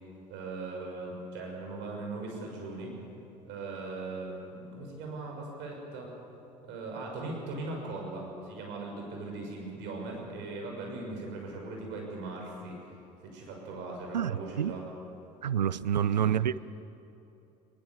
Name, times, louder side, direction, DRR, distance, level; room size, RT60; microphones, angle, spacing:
voice 1, 0.3-2.9 3.4-6.1 6.6-12.9 13.3-14.9 15.9-16.5, right 3 dB, 60° right, 1 dB, 6.3 m, -39 dB
voice 2, 15.4-16.6, right 9 dB, 90° right, 18 dB, 0.4 m, -27 dB
21.0 x 20.5 x 7.3 m, 2.9 s
figure-of-eight pair, 60°, 21 cm